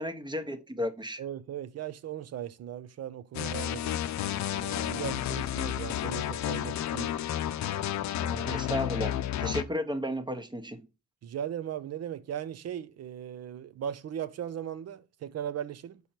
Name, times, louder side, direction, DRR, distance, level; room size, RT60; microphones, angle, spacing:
voice 1, 0.0-1.2 8.4-10.9, equal, 15° right, 0.9 m, -33 dB
voice 2, 1.2-4.0 4.5-7.2 8.2-8.6 11.2-16.0, right 10 dB, 55° right, 0.6 m, -38 dB
sound 1, 3.3-9.6, left 11 dB, 65° left, 0.6 m, -31 dB
5.4 x 4.5 x 4.3 m
cardioid pair, 90°, 30 cm